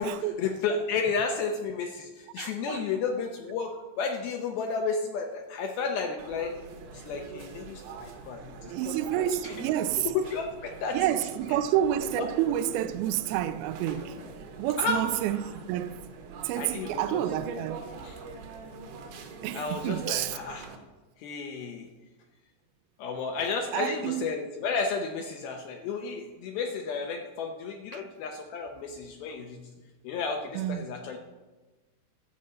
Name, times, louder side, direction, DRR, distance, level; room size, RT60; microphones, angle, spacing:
voice 1, 0.0-6.5 6.9-9.7 10.0-11.0 12.2-12.3 14.8-15.0 16.6-17.2 18.0-18.2 19.5-20.7 21.2-21.9 23.0-29.7 30.0-31.2, left 5 dB, 75° left, 2.3 m, -32 dB
voice 2, 2.4-2.8 8.7-10.1 10.9-14.2 14.6-16.0 16.4-17.8 19.4-20.4 23.7-24.2 27.9-28.0 30.5-30.9, right 11 dB, 85° right, 2.1 m, -29 dB
sound 1, 6.2-20.8, right 4 dB, 70° right, 2.9 m, -44 dB
13.0 x 5.3 x 7.6 m
omnidirectional pair, 5.1 m